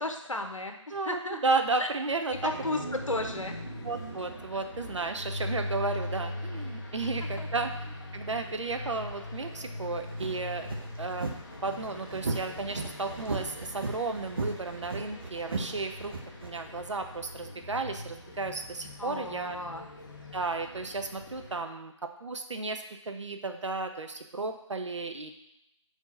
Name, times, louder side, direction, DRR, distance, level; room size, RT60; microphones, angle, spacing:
voice 1, 0.0-0.8 1.0-1.4 1.8-1.9 2.4-3.5 7.4-7.7 19.0-19.9, left 2 dB, 75° left, 5 dB, 1.0 m, -34 dB
voice 2, 0.9-2.5 3.8-10.7 11.0-11.3 11.6-16.1 16.4-19.6 20.3-25.3, right 3 dB, 65° right, 6 dB, 0.7 m, -33 dB
sound 1, 2.1-6.3, right 2 dB, 25° right, 2.2 m, -44 dB
sound 2, 2.3-21.7, left 1 dB, 40° left, 0.9 m, -41 dB
sound 3, 10.0-16.5, right 3 dB, 45° right, 0.9 m, -36 dB
4.8 x 3.7 x 5.4 m, 0.83 s
figure-of-eight pair, 155°, 16 cm